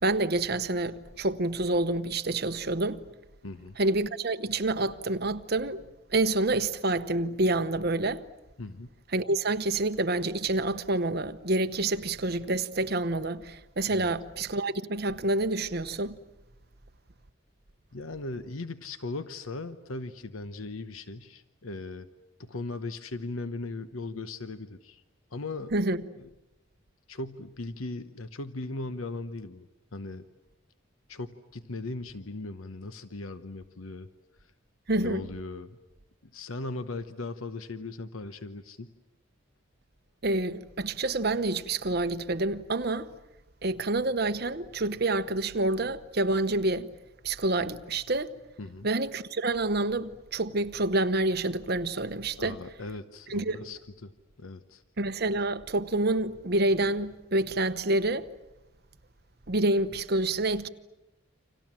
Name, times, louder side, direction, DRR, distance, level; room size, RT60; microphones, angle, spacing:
voice 1, 0.0-3.0 3.8-5.8 6.1-8.2 9.1-16.2 25.7-26.0 34.9-35.3 40.2-43.1 43.6-46.9 47.2-48.3 48.8-52.6 53.3-53.7 55.0-58.3 59.5-60.7, right 2 dB, 50° right, 1.0 m, -28 dB
voice 2, 3.4-3.8 8.6-8.9 13.9-14.1 17.9-22.1 22.4-25.0 25.3-25.7 26.1-26.3 27.1-30.2 31.1-34.1 35.0-35.8 36.3-38.9 48.6-48.9 52.4-54.1 54.4-54.8, left 2 dB, 85° left, 1.0 m, -38 dB
29.5 x 26.5 x 7.5 m
head